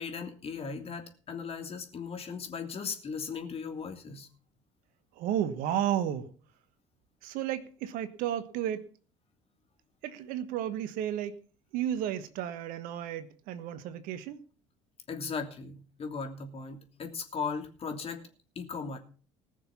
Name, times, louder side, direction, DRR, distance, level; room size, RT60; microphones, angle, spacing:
voice 1, 0.0-4.3 15.1-18.2 18.5-19.0, left 5 dB, 40° left, 3.0 m, -37 dB
voice 2, 5.2-6.3 7.2-8.8 10.0-11.4 11.7-14.4, right 10 dB, 60° right, 1.4 m, -32 dB
19.5 x 6.7 x 5.8 m
hypercardioid pair, 60°, 16 cm